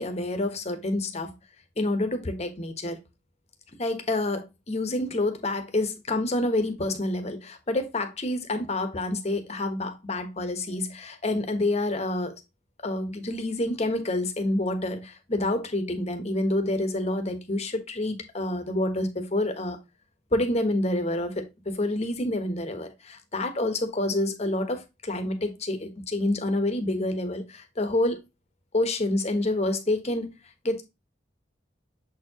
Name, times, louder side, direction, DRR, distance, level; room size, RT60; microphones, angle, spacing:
voice 1, 0.0-1.3 1.8-3.0 3.8-12.3 12.8-19.8 20.3-28.2 28.7-30.4 30.6-30.8, left 1 dB, 40° left, 1.2 m, -28 dB
7.2 x 4.6 x 2.9 m
head